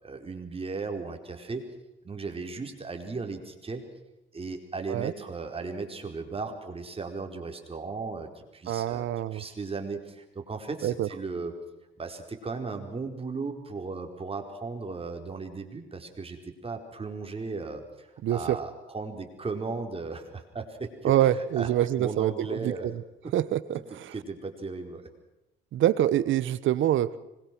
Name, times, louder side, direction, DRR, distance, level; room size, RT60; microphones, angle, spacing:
voice 1, 0.0-1.6 2.0-3.8 4.3-11.5 12.0-21.7 22.0-22.9 23.2-23.3 24.1-25.1, right 4 dB, 30° right, 4 dB, 4.5 m, -36 dB
voice 2, 8.7-9.4 10.8-11.1 18.2-18.6 21.0-22.9 23.3-24.1 25.7-27.2, right 12 dB, 75° right, 16 dB, 1.2 m, -26 dB
25.5 x 21.5 x 6.2 m, 0.96 s
cardioid pair, 90°, 20 cm